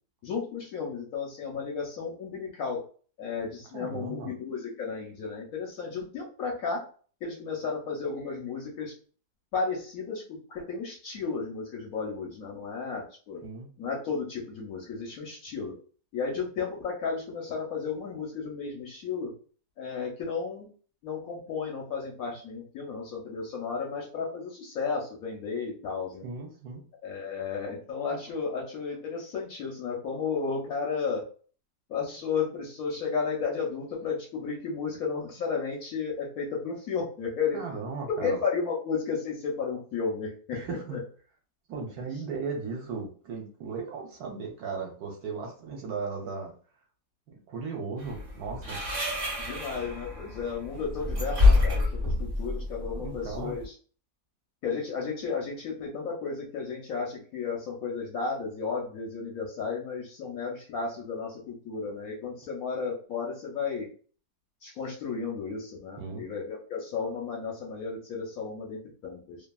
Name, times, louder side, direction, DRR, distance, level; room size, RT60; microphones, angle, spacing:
voice 1, 0.2-2.8 3.2-6.8 7.2-8.9 9.5-13.4 13.8-15.8 16.1-19.3 19.8-20.7 21.0-26.3 27.0-31.2 31.9-37.6 38.1-40.6 40.9-41.0 49.4-51.8 52.2-53.7 54.6-63.9 64.6-69.4, left 5 dB, 70° left, -2 dB, 0.9 m, -33 dB
voice 2, 3.7-4.3 13.4-13.7 26.2-26.8 37.5-38.4 40.5-41.0 41.7-46.5 47.5-48.8 53.0-53.6 66.0-66.3, right 4 dB, 70° right, 1 dB, 1.0 m, -36 dB
sound 1, 48.0-53.7, left 3 dB, 35° right, 0.9 m, -27 dB
2.7 x 2.4 x 2.2 m, 0.42 s
omnidirectional pair, 1.9 m